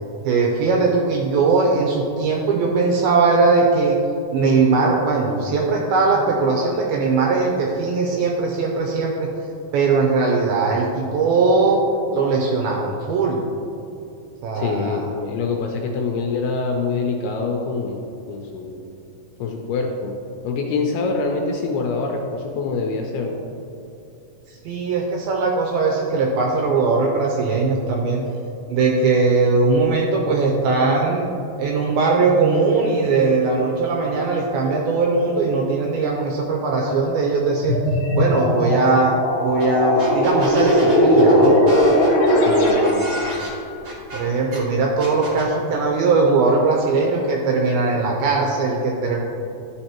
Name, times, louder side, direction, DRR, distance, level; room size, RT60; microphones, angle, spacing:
voice 1, 0.2-4.0 4.3-9.3 9.7-11.8 12.1-13.4 14.4-15.1 24.5-28.2 28.7-31.3 31.6-37.8 38.1-39.1 39.4-41.6 44.1-49.2, right 4 dB, 85° right, -1 dB, 2.2 m, -20 dB
voice 2, 14.5-18.0 18.3-18.8 19.4-20.1 20.4-23.4 42.4-43.1, left 4 dB, 80° left, 1 dB, 2.3 m, -25 dB
sound 1, 37.6-43.4, equal, 55° left, 1.7 m, -18 dB
sound 2, 39.6-39.7 40.0-44.6 45.0-45.5, equal, 50° right, 1.4 m, -33 dB
11.5 x 5.4 x 2.9 m, 2.8 s
omnidirectional pair, 4.9 m